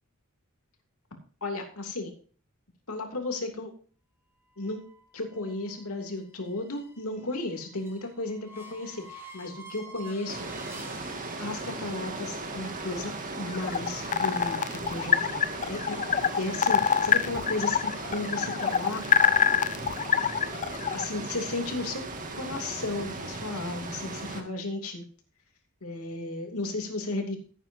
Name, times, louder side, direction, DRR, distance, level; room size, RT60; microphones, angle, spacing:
voice 1, 1.4-2.1 2.9-3.7 4.6-4.8 5.1-10.5 11.4-19.0 20.9-22.0 22.4-25.0 25.8-27.4, left 2 dB, 80° left, 3 dB, 2.9 m, -34 dB
sound 1, 4.5-12.2, right 2 dB, 10° right, 2.6 m, -50 dB
sound 2, 10.3-24.4, right 2 dB, 40° right, 1.9 m, -37 dB
sound 3, 13.5-21.0, left 7 dB, 35° left, 0.5 m, -25 dB
16.0 x 9.1 x 2.7 m, 0.42 s
head